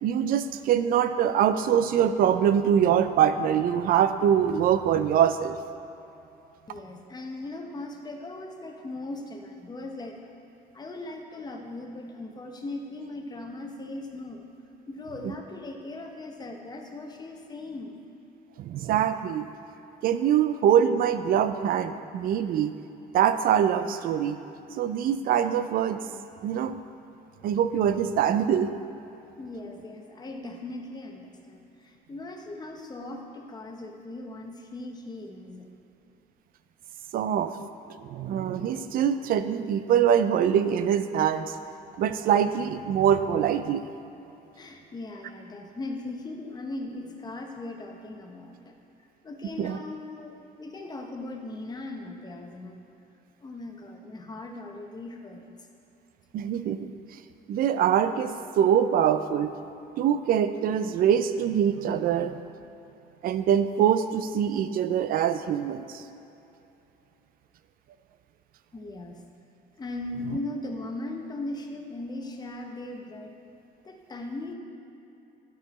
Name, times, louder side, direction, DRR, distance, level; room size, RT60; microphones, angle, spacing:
voice 1, 0.0-5.6 15.2-15.3 18.6-19.5 20.0-22.7 23.1-24.4 24.8-26.0 26.4-26.8 27.4-28.7 37.1-37.5 38.0-41.6 42.0-43.9 49.6-49.8 56.3-56.9 57.5-59.5 60.0-62.4 63.2-66.0, right 9 dB, 60° right, 11 dB, 0.4 m, -24 dB
voice 2, 6.7-10.3 10.7-14.5 14.9-18.0 27.4-27.6 29.4-35.7 44.6-48.7 49.2-52.8 53.4-55.5 68.7-69.2 69.8-73.4 73.8-74.5, left 2 dB, 25° left, 2 dB, 0.9 m, -38 dB
12.0 x 4.6 x 4.1 m, 2.9 s
cardioid pair, 110°, 17 cm